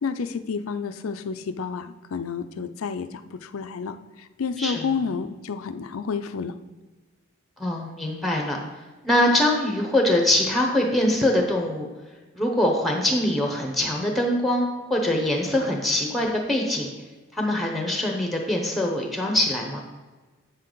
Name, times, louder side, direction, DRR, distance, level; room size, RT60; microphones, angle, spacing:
voice 1, 0.0-6.5, left 5 dB, 85° left, 11 dB, 0.5 m, -30 dB
voice 2, 7.6-8.6 9.0-11.9 12.3-16.9 17.3-19.8, left 1 dB, ahead, 1 dB, 0.8 m, -23 dB
8.1 x 6.5 x 3.9 m, 1.3 s
head